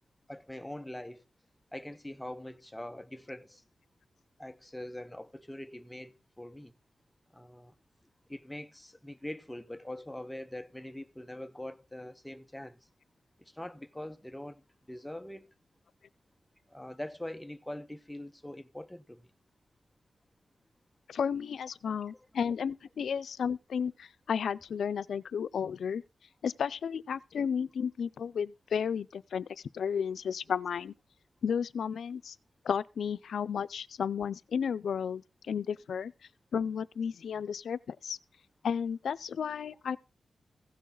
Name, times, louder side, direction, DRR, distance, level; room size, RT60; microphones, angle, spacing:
voice 1, 0.3-1.2 1.7-3.6 4.4-6.7 7.3-7.7 8.3-12.8 13.4-15.5 16.7-19.3, left 1 dB, 5° left, 0.6 m, -43 dB
voice 2, 21.1-26.0 26.4-29.5 29.7-30.9 31.4-32.4 32.6-36.1 36.5-38.2 38.6-40.0, left 7 dB, 85° left, 0.4 m, -33 dB
16.0 x 6.3 x 3.8 m
wide cardioid pair, 100°, 0 cm